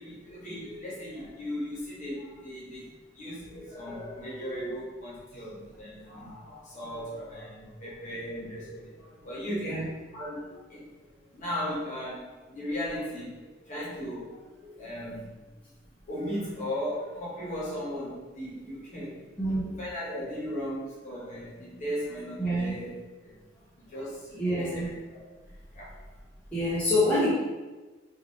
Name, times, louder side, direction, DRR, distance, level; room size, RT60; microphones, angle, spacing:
voice 1, 0.0-9.8 10.1-10.8 11.3-15.5 16.1-19.2 19.8-22.9 23.2-23.3 23.9-24.8 25.1-25.2 25.7-25.9, equal, 40° left, -7 dB, 1.0 m, -37 dB
voice 2, 19.4-19.8 22.4-22.7 24.3-24.9 26.5-27.3, left 1 dB, 5° left, -10 dB, 0.7 m, -26 dB
3.1 x 2.6 x 2.6 m, 1.2 s
head